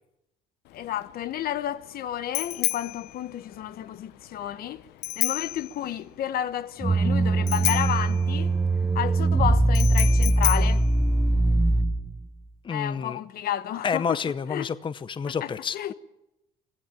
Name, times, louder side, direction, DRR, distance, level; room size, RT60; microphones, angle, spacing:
Bicycle bell, 0.7-11.8, left 17 dB, 85° left, 1.0 m, -33 dB
voice 1, 0.7-4.8 5.2-8.5 8.9-10.8 12.7-14.2 14.5-14.7 15.3-15.9, left 11 dB, 65° left, 1.0 m, -31 dB
sound 1, 6.8-12.3, right 2 dB, 15° right, 1.1 m, -22 dB
voice 2, 12.6-13.2 13.8-15.9, left 6 dB, 30° left, 0.8 m, -29 dB
25.0 x 16.0 x 9.0 m
cardioid pair, 110°, 17 cm